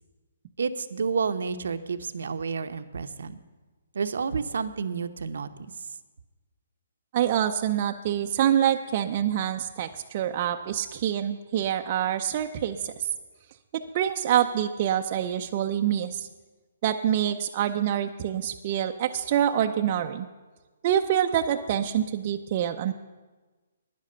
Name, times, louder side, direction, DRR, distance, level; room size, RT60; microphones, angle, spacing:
voice 1, 0.6-3.4 3.9-5.7, right 5 dB, 75° right, 10 dB, 0.8 m, -30 dB
voice 2, 7.1-12.9 13.7-16.3 16.8-20.3 20.8-22.9, right 10 dB, 40° right, 4 dB, 0.6 m, -26 dB
10.5 x 10.0 x 6.7 m, 1.3 s
hypercardioid pair, 150°, 0 cm